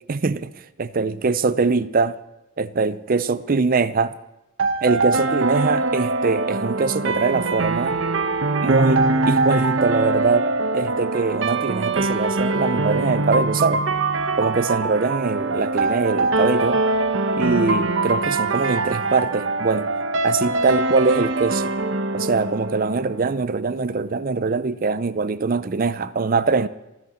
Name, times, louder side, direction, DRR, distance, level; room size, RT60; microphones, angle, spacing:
voice 1, 0.1-0.5 0.8-2.2 2.6-4.1 4.8-8.0 8.6-10.5 10.7-13.8 14.4-16.8 17.4-19.9 20.2-21.7 22.1-26.7, right 4 dB, 45° right, 0.5 m, -22 dB
sound 1, 4.6-23.5, right 3 dB, 65° right, 0.9 m, -23 dB
29.0 x 10.0 x 4.3 m
head